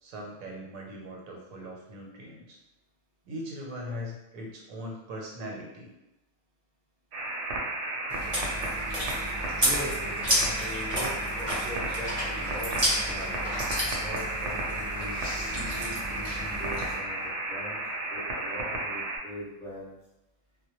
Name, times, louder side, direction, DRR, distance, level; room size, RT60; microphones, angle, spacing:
voice 1, 0.0-2.6 3.3-5.9, equal, 85° right, -1 dB, 1.0 m, -40 dB
sound 1, 7.1-19.2, right 2 dB, 70° right, 0.8 m, -33 dB
Chewing mastication, 8.1-16.9, equal, 30° right, 0.7 m, -32 dB
voice 2, 9.6-13.4 13.9-15.2 15.8-17.8 18.1-20.0, equal, 5° left, -9 dB, 0.5 m, -41 dB
sound 2, 13.1-14.3 15.0-15.8 16.4-16.5 16.8-17.4, left 1 dB, 55° left, 0.7 m, -49 dB
2.2 x 2.1 x 2.8 m, 0.93 s
omnidirectional pair, 1.4 m